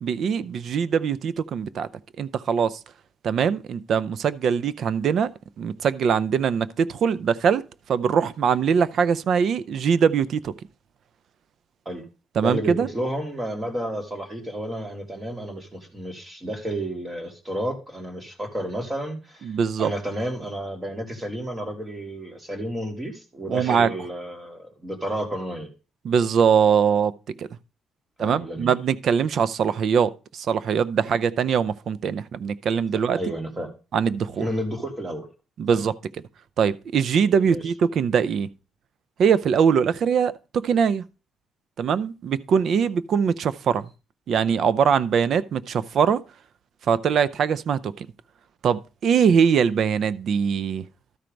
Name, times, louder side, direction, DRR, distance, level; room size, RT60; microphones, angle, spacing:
voice 1, 0.0-1.9 2.2-2.8 3.2-5.3 5.6-7.6 7.9-10.5 12.4-12.9 19.4-19.9 23.5-24.0 26.0-27.5 28.2-33.2 33.9-34.5 35.6-36.0 36.6-38.5 39.2-41.0 41.8-43.9 44.3-46.2 46.9-48.1 48.6-50.9, right 7 dB, 65° right, 0.5 m, -22 dB
voice 2, 12.4-19.5 19.8-25.7 28.2-28.7 33.1-33.7 34.4-35.3 35.7-35.8 37.4-37.6, right 1 dB, 25° right, 2.8 m, -31 dB
12.5 x 4.4 x 5.2 m
cardioid pair, 90°, 0 cm